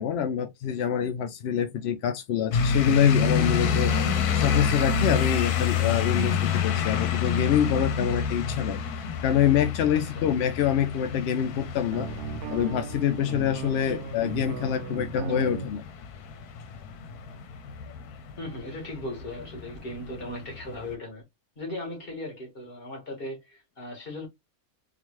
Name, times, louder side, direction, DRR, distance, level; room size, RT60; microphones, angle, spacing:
voice 1, 0.0-3.9 4.4-8.8 9.2-12.1 12.5-15.8, left 9 dB, 70° left, 0.6 m, -26 dB
sound 1, 2.5-20.9, left 6 dB, 85° left, 1.2 m, -28 dB
voice 2, 9.9-10.3 13.9-14.1 18.4-21.2 21.6-24.3, left 1 dB, 40° left, 1.8 m, -37 dB
sound 2, 11.9-15.7, right 5 dB, 90° right, 1.1 m, -36 dB
3.8 x 2.4 x 3.1 m
omnidirectional pair, 1.6 m